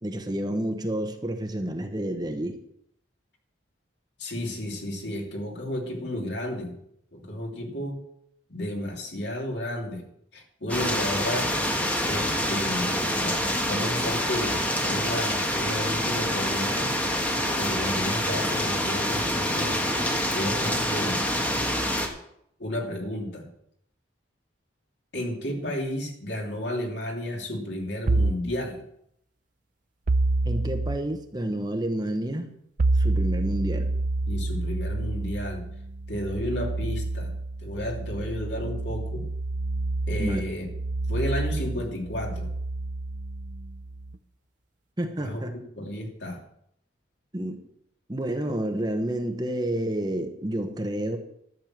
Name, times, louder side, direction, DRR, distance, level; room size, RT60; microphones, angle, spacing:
voice 1, 0.0-2.6 12.9-13.2 30.4-32.5 32.9-33.9 40.2-40.4 45.0-45.5 47.3-47.6 48.1-51.2, right 1 dB, 20° right, 5 dB, 1.1 m, -29 dB
voice 2, 4.2-6.8 7.1-8.0 8.5-10.0 10.3-11.5 12.0-16.9 17.5-19.8 20.3-21.2 22.6-23.4 25.1-28.8 34.3-35.6 36.1-37.3 37.6-39.3 40.1-40.7 41.1-42.5 45.2-45.4 45.7-46.4, left 1 dB, 65° left, 1 dB, 2.9 m, -32 dB
sound 1, 10.7-22.1, equal, 10° left, 1.4 m, -26 dB
sound 2, 28.1-28.5 30.1-31.0 32.8-44.2, right 2 dB, 45° right, 0.5 m, -28 dB
12.5 x 6.8 x 7.4 m, 0.73 s
head